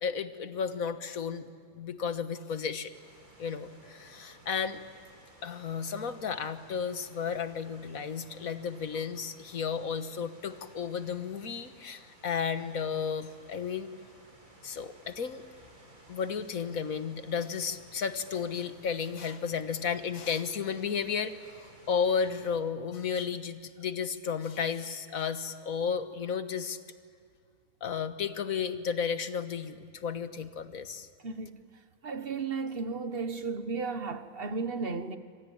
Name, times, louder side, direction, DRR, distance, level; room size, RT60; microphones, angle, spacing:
voice 1, 0.0-1.5 1.8-3.0 3.4-4.8 5.4-13.9 14.6-15.4 16.1-26.8 27.8-31.1, left 6 dB, 70° left, 1.7 m, -33 dB
sound 1, 2.9-22.5, right 1 dB, 65° right, 6.0 m, -57 dB
voice 2, 31.2-31.6 32.0-35.2, right 4 dB, 45° right, 1.5 m, -34 dB
26.5 x 25.5 x 8.8 m
omnidirectional pair, 1.5 m